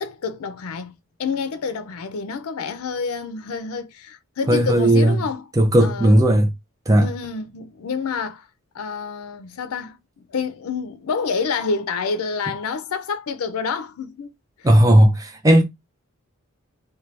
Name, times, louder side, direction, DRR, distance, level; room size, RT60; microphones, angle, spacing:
voice 1, 0.0-5.5 5.8-6.2 7.0-8.5 8.7-14.3 14.6-14.7, left 5 dB, 90° left, 0.5 m, -28 dB
voice 2, 4.5-5.2 5.6-6.5 6.9-7.1 14.6-15.6, right 1 dB, 15° right, 0.4 m, -15 dB
2.7 x 2.2 x 3.2 m
head